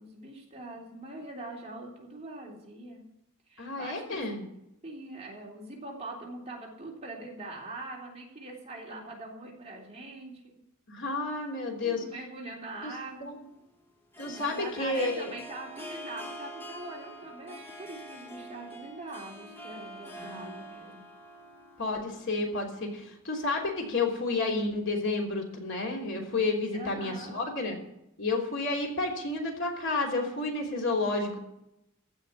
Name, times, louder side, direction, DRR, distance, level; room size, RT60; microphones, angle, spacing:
voice 1, 0.0-3.0 3.5-4.2 4.8-10.5 11.7-13.3 14.2-21.1 26.7-27.4, right 2 dB, 30° right, -2 dB, 3.5 m, -43 dB
voice 2, 3.6-4.4 10.9-12.0 12.8-12.9 13.2-13.4 14.2-15.3 20.2-20.6 21.8-27.8 28.2-31.4, left 3 dB, 55° left, 1 dB, 3.3 m, -31 dB
Harp, 12.8-23.2, equal, 10° left, 1.9 m, -46 dB
15.5 x 5.9 x 9.6 m, 0.83 s
head